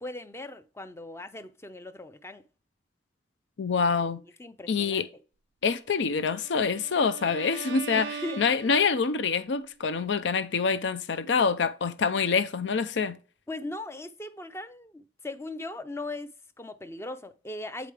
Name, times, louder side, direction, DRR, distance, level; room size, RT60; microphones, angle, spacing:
voice 1, 0.0-2.4 4.4-5.1 7.9-8.4 13.5-17.9, left 2 dB, 15° left, 0.5 m, -39 dB
voice 2, 3.6-4.2 4.7-5.1 5.6-13.2, left 5 dB, 85° left, 0.5 m, -26 dB
Bowed string instrument, 6.2-9.3, right 7 dB, 70° right, 0.4 m, -41 dB
8.4 x 4.9 x 3.3 m
head